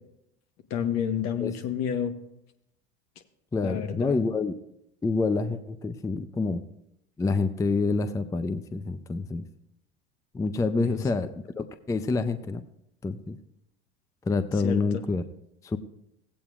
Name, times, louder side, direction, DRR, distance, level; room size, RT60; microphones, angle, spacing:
voice 1, 0.7-2.1 3.6-4.1 10.8-10.9 14.6-15.0, left 8 dB, 55° left, 7 dB, 1.2 m, -29 dB
voice 2, 3.5-4.6 5.0-6.6 7.2-9.5 10.3-12.6 13.0-13.4 14.2-15.2 15.6-15.8, left 3 dB, 10° left, 11 dB, 0.5 m, -27 dB
16.5 x 8.5 x 2.4 m, 0.80 s
hypercardioid pair, 80°, 32 cm